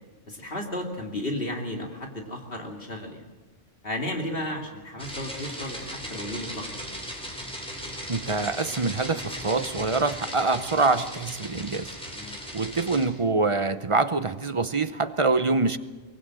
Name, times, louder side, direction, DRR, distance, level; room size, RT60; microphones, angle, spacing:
voice 1, 0.3-3.2 3.8-6.7 12.1-12.4, left 1 dB, 50° left, 2 dB, 2.8 m, -33 dB
sound 1, 5.0-13.0, equal, 5° left, 4.6 m, -37 dB
voice 2, 8.1-11.9 12.5-15.8, right 3 dB, 30° right, 12 dB, 0.7 m, -25 dB
23.5 x 21.5 x 7.6 m, 1.3 s
omnidirectional pair, 1.2 m